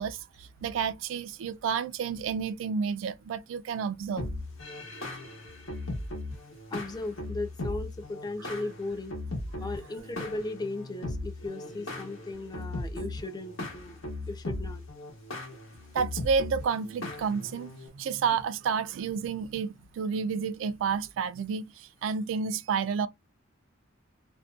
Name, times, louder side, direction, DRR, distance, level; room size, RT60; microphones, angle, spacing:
voice 1, 0.0-4.3 15.9-23.1, right 6 dB, 65° right, 0.3 m, -30 dB
sound 1, 4.2-17.9, left 2 dB, 85° left, 0.9 m, -38 dB
voice 2, 6.7-9.1 9.6-14.0 14.3-14.8, left 2 dB, 20° left, 0.4 m, -37 dB
2.5 x 2.1 x 2.4 m
head